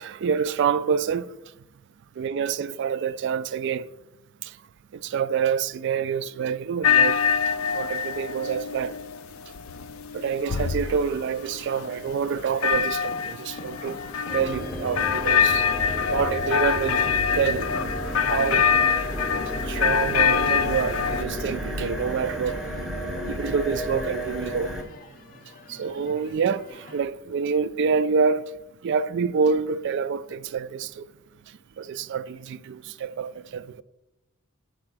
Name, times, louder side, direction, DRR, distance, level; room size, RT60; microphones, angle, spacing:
voice 1, 0.0-1.3 2.2-3.9 4.4-4.5 4.9-7.2 7.7-8.9 10.1-14.0 14.3-15.7 16.1-17.0 17.3-17.7 18.2-18.7 19.6-22.6 23.3-24.7 25.7-28.4 28.8-31.1 31.8-33.8, right 6 dB, 55° right, 0.3 m, -27 dB
sound 1, 6.8-21.2, left 7 dB, 65° left, 0.4 m, -25 dB
sound 2, 10.7-27.0, left 2 dB, 40° left, 0.7 m, -46 dB
sound 3, 14.3-24.8, equal, ahead, 0.6 m, -32 dB
6.4 x 4.8 x 6.1 m
head